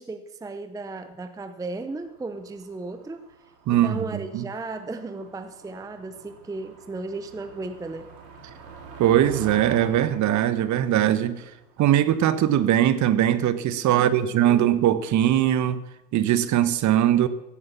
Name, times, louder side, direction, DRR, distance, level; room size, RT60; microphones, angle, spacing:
voice 1, 0.0-3.3 3.7-8.1 13.9-14.6, right 3 dB, 5° right, 9 dB, 0.7 m, -35 dB
Motor vehicle (road), 1.7-12.0, right 4 dB, 75° right, 5.5 m, -45 dB
voice 2, 3.7-4.0 4.3-4.4 9.0-11.4 11.8-15.8 16.1-17.3, right 11 dB, 35° right, 14 dB, 1.2 m, -21 dB
16.0 x 8.6 x 7.2 m, 0.95 s
hypercardioid pair, 105°, 48 cm